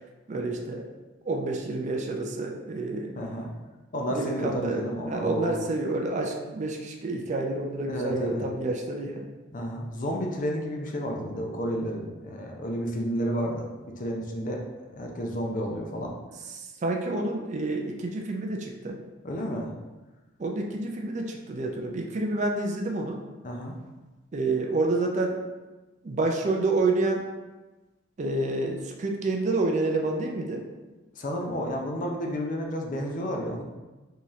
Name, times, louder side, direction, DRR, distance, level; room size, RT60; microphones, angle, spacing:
voice 1, 0.3-0.9 1.3-3.1 4.1-9.3 16.5-19.0 20.4-23.2 24.3-25.4 26.0-27.2 28.2-30.6, right 2 dB, 35° right, 1 dB, 0.4 m, -28 dB
voice 2, 3.1-3.5 3.9-5.6 7.9-8.5 9.5-14.6 14.9-16.1 19.2-19.7 23.4-23.8 31.2-33.6, equal, 40° left, 1 dB, 0.5 m, -31 dB
3.7 x 2.8 x 3.1 m, 1.2 s
head